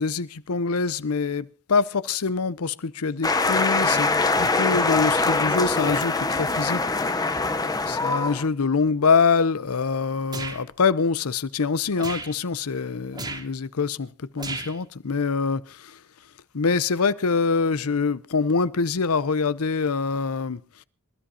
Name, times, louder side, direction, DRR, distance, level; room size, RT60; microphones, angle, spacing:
voice 1, 0.0-4.1 4.4-6.8 7.9-16.0 16.5-20.6, left 4 dB, 80° left, 0.7 m, -24 dB
sound 1, 3.2-8.5, left 3 dB, 15° left, 0.8 m, -23 dB
sound 2, 10.3-10.6 12.0-12.3 13.1-13.5 14.4-14.8, right 3 dB, 20° right, 2.2 m, -34 dB
26.5 x 13.0 x 2.8 m
head